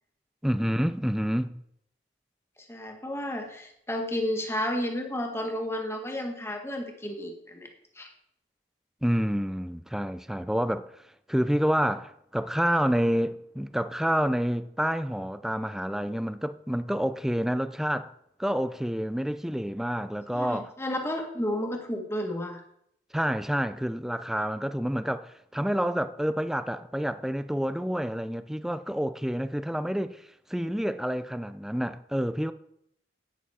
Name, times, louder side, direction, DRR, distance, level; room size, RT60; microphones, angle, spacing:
voice 1, 0.4-1.6 9.0-10.9 11.3-18.1 18.4-20.7 23.1-30.2 30.5-32.5, equal, ahead, 0.4 m, -28 dB
voice 2, 2.7-7.7 7.9-8.1 20.3-22.6, left 1 dB, 15° left, 1.7 m, -32 dB
11.0 x 9.3 x 4.3 m
head